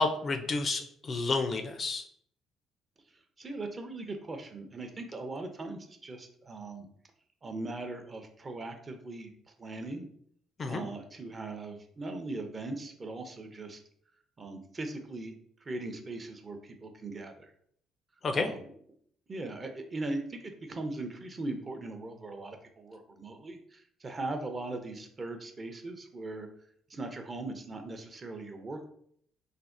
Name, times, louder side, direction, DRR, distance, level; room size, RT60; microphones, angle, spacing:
voice 1, 0.0-2.1 10.6-10.8 18.2-18.5, left 3 dB, 45° left, 6 dB, 0.4 m, -30 dB
voice 2, 3.4-6.9 7.4-9.3 9.6-10.1 10.7-13.8 14.4-15.3 15.6-17.5 18.3-18.6 19.3-26.5 26.9-28.9, right 2 dB, 35° right, 5 dB, 0.5 m, -39 dB
3.3 x 2.0 x 2.5 m, 0.64 s
supercardioid pair, 65°, 0 cm